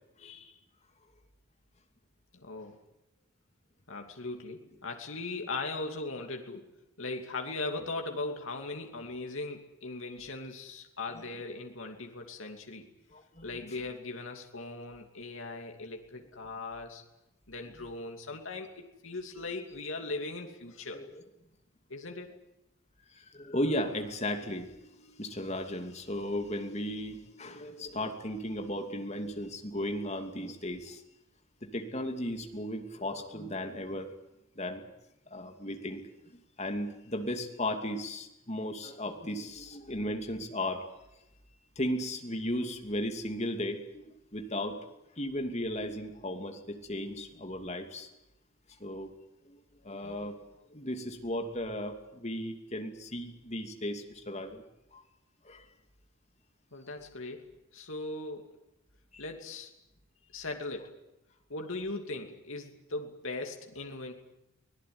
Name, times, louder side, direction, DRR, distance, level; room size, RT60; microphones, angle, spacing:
voice 1, 0.2-0.5 11.1-11.2 13.1-13.5 20.9-21.2 23.1-31.0 31.7-34.1 34.6-34.8 35.3-36.0 36.6-40.8 41.8-44.8 45.2-48.1 48.8-49.1 49.4-49.6 49.8-50.3 50.7-54.6 54.9-55.0 55.4-55.6 59.1-59.2, left 1 dB, 30° left, 5 dB, 2.7 m, -35 dB
voice 2, 2.3-2.8 3.9-6.6 7.0-12.9 13.4-17.0 17.5-21.0 21.9-22.3 56.7-57.5 57.7-58.5 59.2-59.7 60.3-61.0 61.5-64.1, left 3 dB, 70° left, 3 dB, 2.8 m, -39 dB
24.5 x 18.5 x 9.7 m, 0.90 s
head